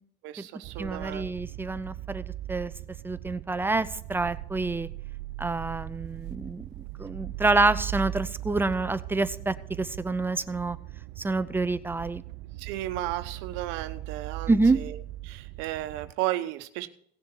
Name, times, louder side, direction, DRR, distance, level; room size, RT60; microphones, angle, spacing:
voice 1, 0.2-1.3 12.6-16.9, right 15 dB, 85° right, 9 dB, 1.0 m, -34 dB
sound 1, 0.6-16.1, right 15 dB, 65° right, 0.4 m, -39 dB
voice 2, 0.8-2.7 3.0-4.9 5.4-10.8 11.2-12.2 14.5-14.8, right 3 dB, 10° right, 13 dB, 0.5 m, -27 dB
17.5 x 6.7 x 4.6 m, 0.65 s
cardioid pair, 140°, 19 cm